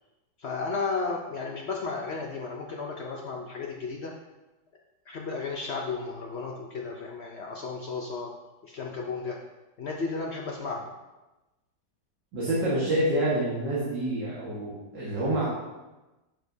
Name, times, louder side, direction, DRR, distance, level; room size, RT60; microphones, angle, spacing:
voice 1, 0.4-4.1 5.1-8.3 8.6-9.4 9.8-10.9, left 4 dB, 85° left, 0 dB, 0.5 m, -33 dB
voice 2, 12.3-15.5, right 1 dB, 70° right, -8 dB, 2.3 m, -27 dB
11.0 x 5.1 x 2.7 m, 1.1 s
omnidirectional pair, 2.0 m